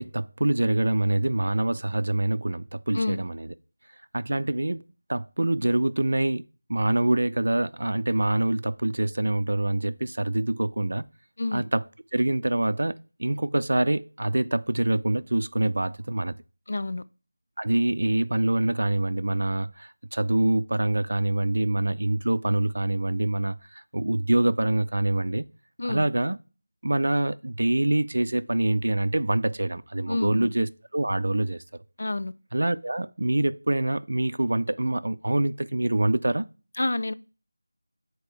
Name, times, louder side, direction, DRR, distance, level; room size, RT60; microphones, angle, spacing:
voice 1, 0.0-3.5 4.1-4.8 5.1-6.4 6.7-11.0 11.5-11.8 12.1-16.4 17.6-25.4 25.9-26.4 26.8-31.6 32.5-36.5, right 1 dB, 60° right, 0.4 m, -25 dB
voice 2, 16.7-17.0 25.8-26.0 30.1-30.5 32.0-32.3 36.8-37.1, left 2 dB, 55° left, 0.4 m, -28 dB
6.6 x 4.4 x 3.3 m
figure-of-eight pair, 170°, 0 cm